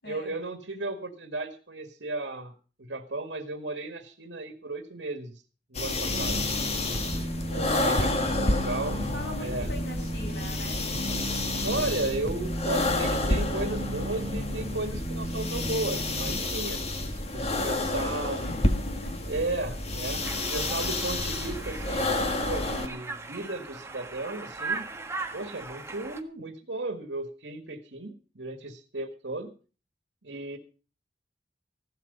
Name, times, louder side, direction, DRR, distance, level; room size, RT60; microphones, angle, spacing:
voice 1, 0.0-2.5 2.8-5.4 5.7-6.5 7.5-9.0 9.4-9.7 11.6-18.4 19.3-20.2 20.5-24.9 25.3-29.5 30.2-30.6, right 2 dB, 80° right, 7 dB, 1.7 m, -35 dB
sound 1, 5.7-22.9, left 2 dB, 35° left, 2.0 m, -30 dB
sound 2, 6.1-16.4, right 1 dB, 5° left, 2.4 m, -36 dB
voice 2, 8.3-8.6 8.9-10.9 13.5-14.1 18.4-19.2, left 2 dB, 70° left, 4 dB, 7.0 m, -41 dB
Conversation, 20.2-26.2, right 4 dB, 15° right, 1.4 m, -38 dB
15.5 x 12.0 x 5.4 m, 0.37 s
head